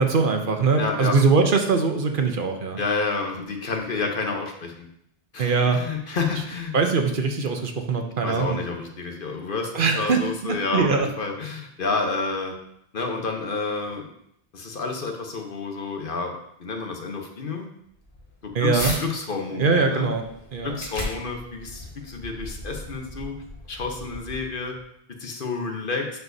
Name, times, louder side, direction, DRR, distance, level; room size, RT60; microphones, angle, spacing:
voice 1, 0.0-2.8 5.4-5.8 6.7-8.6 9.7-11.1 18.5-19.0 19.6-20.2 20.5-20.8, right 4 dB, 60° right, 5 dB, 0.9 m, -22 dB
voice 2, 0.8-1.2 2.8-4.9 5.3-6.7 8.2-12.6 12.9-14.1 14.5-16.3 16.6-17.7 18.4-20.1 20.6-23.3 23.7-24.8 25.2-26.1, left 4 dB, 60° left, 3 dB, 1.1 m, -29 dB
sound 1, 17.9-19.0 19.5-24.8, left 1 dB, 35° left, 1.9 m, -37 dB
11.0 x 4.6 x 2.7 m, 0.73 s
omnidirectional pair, 1.0 m